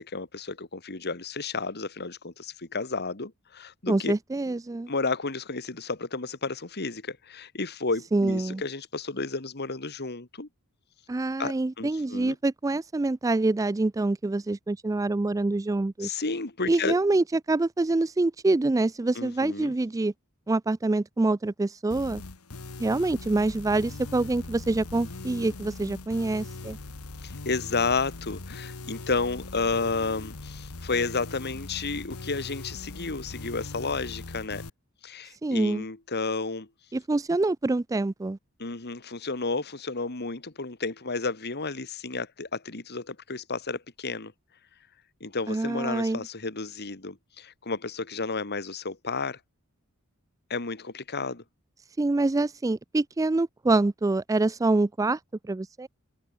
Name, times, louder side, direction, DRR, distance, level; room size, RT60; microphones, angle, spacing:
voice 1, 0.0-4.1 4.9-10.5 11.4-12.4 16.0-17.0 19.2-19.7 27.2-34.6 35.0-36.7 38.6-44.3 45.2-49.4 50.5-51.4, left 3 dB, 50° left, 2.1 m, -32 dB
voice 2, 3.9-4.9 8.1-8.6 11.1-16.1 16.7-20.1 20.5-22.2 22.8-26.8 35.4-35.8 36.9-38.4 45.5-46.2 52.0-55.2 55.5-55.9, right 2 dB, 15° right, 0.3 m, -26 dB
sound 1, 21.9-34.7, left 2 dB, 85° left, 1.5 m, -40 dB
head